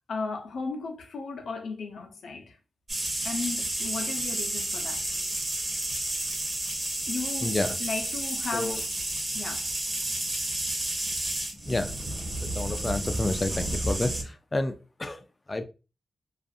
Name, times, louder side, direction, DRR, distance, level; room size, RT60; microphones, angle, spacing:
voice 1, 0.1-2.6 3.2-5.2 7.1-8.9 9.3-9.7, left 4 dB, 80° left, 0.5 m, -35 dB
sound 1, 2.9-14.2, right 1 dB, 35° right, 0.9 m, -31 dB
voice 2, 7.4-7.8 8.5-8.8 11.7-12.0 12.4-15.6, left 2 dB, 25° left, 0.3 m, -30 dB
2.4 x 2.3 x 2.6 m
wide cardioid pair, 115°, 0 cm